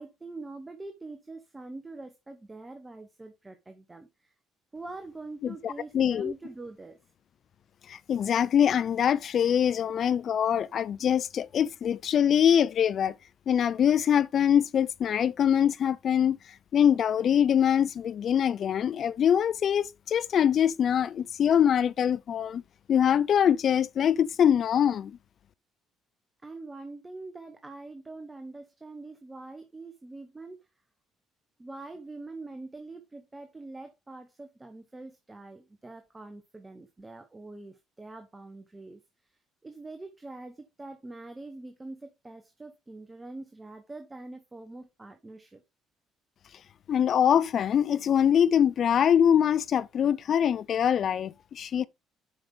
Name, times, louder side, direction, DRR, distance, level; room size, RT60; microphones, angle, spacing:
voice 1, 0.0-4.3 4.7-7.0 26.4-30.7 31.6-45.6, right 2 dB, 20° right, 1.4 m, -44 dB
voice 2, 5.4-6.3 7.9-13.1 13.5-16.4 16.7-22.6 22.9-25.2 46.9-51.9, left 9 dB, 55° left, 0.5 m, -24 dB
8.0 x 5.7 x 3.7 m
hypercardioid pair, 55°, 0 cm